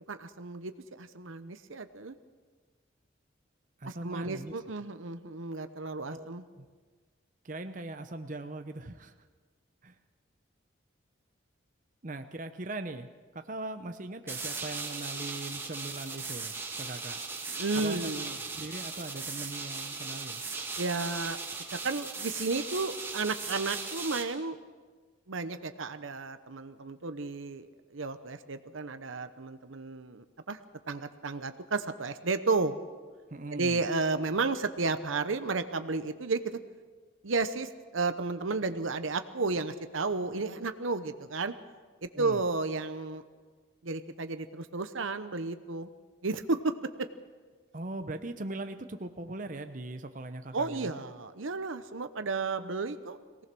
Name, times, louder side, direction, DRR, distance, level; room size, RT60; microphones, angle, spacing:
voice 1, 0.1-0.7 1.0-2.2 3.8-6.4 17.6-18.4 20.8-21.4 21.7-24.6 25.3-30.6 30.9-32.8 33.5-36.6 37.2-41.5 42.0-43.2 43.8-45.9 46.2-47.1 50.5-53.2, right 3 dB, 85° right, 10 dB, 1.0 m, -33 dB
voice 2, 3.8-4.6 6.1-6.3 6.6-6.7 7.4-9.1 9.8-10.0 12.0-17.2 17.7-18.1 18.5-20.4 33.3-33.8 42.1-42.4 47.7-50.9, right 2 dB, 40° right, 7 dB, 0.8 m, -40 dB
sound 1, 14.3-24.2, right 4 dB, 10° right, 1.8 m, -38 dB
23.0 x 18.0 x 6.2 m, 1.4 s
head